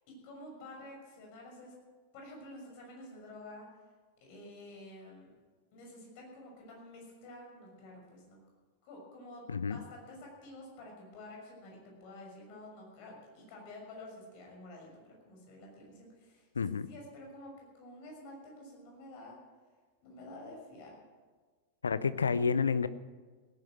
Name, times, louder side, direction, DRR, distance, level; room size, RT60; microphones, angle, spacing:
voice 1, 0.0-1.7 2.1-3.7 4.2-5.3 5.7-8.4 8.8-19.4 20.0-20.9, left 1 dB, 45° left, 0 dB, 6.1 m, -50 dB
voice 2, 9.5-9.8 16.6-16.9 21.8-22.9, left 5 dB, 70° left, 16 dB, 0.6 m, -29 dB
17.0 x 10.5 x 7.6 m, 1.4 s
figure-of-eight pair, 90°, 0 cm